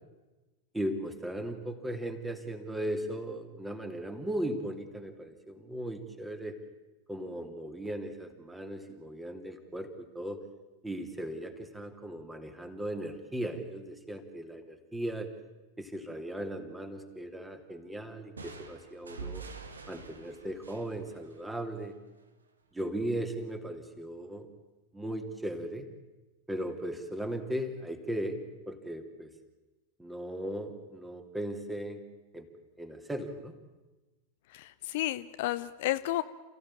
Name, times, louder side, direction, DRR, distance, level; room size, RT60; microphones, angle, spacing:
voice 1, 0.7-6.6 7.1-10.4 10.8-15.3 15.8-19.5 19.9-21.9 22.7-24.5 24.9-25.9 26.5-29.3 30.0-32.1 32.3-32.5 32.8-33.6, right 1 dB, 5° right, 6 dB, 2.8 m, -37 dB
sound 1, 18.4-22.0, right 4 dB, 75° right, 2.0 m, -46 dB
voice 2, 34.5-36.2, left 15 dB, 50° left, 13 dB, 0.7 m, -32 dB
29.0 x 16.0 x 8.9 m, 1.1 s
figure-of-eight pair, 90°, 0 cm